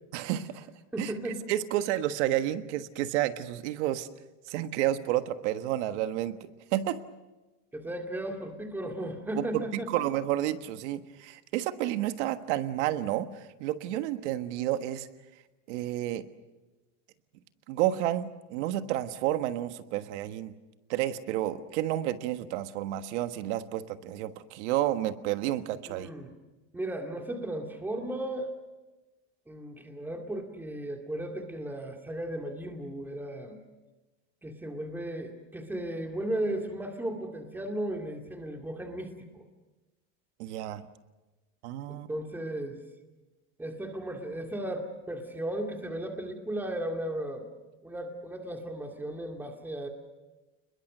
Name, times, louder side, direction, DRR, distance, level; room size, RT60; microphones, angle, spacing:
voice 1, 0.1-0.7 1.0-4.1 4.5-7.0 9.4-15.1 15.7-16.3 17.7-20.5 20.9-26.1 40.4-40.8 41.6-42.1, right 13 dB, 85° right, 10 dB, 1.5 m, -30 dB
voice 2, 0.9-1.4 7.7-9.9 25.9-26.3 26.7-28.5 29.5-33.6 34.4-39.4 41.9-42.8 43.6-47.5 47.8-49.9, right 1 dB, 5° right, 3 dB, 2.3 m, -35 dB
29.5 x 21.5 x 6.7 m, 1.1 s
cardioid pair, 155°, 34 cm